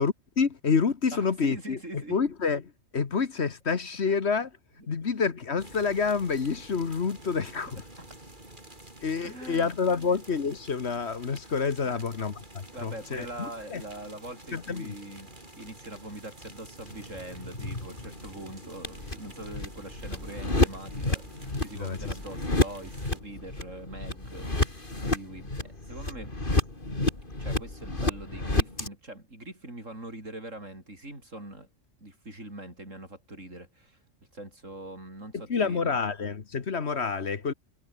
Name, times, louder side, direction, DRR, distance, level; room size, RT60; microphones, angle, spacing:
voice 1, 0.0-4.5 4.9-7.8 9.0-13.8 14.5-14.9 21.8-22.0 35.3-37.5, left 5 dB, 60° left, 1.7 m, -28 dB
voice 2, 1.1-2.2 4.1-4.2 7.6-7.7 8.0-8.1 9.2-10.2 11.8-12.0 12.7-26.4 27.4-31.7 32.0-34.0 34.3-36.0, right 1 dB, 80° right, 8.0 m, -43 dB
sound 1, 5.6-23.2, right 1 dB, 40° right, 6.1 m, -49 dB
sound 2, 16.9-28.9, left 2 dB, 40° left, 4.3 m, -31 dB
omnidirectional pair, 1.3 m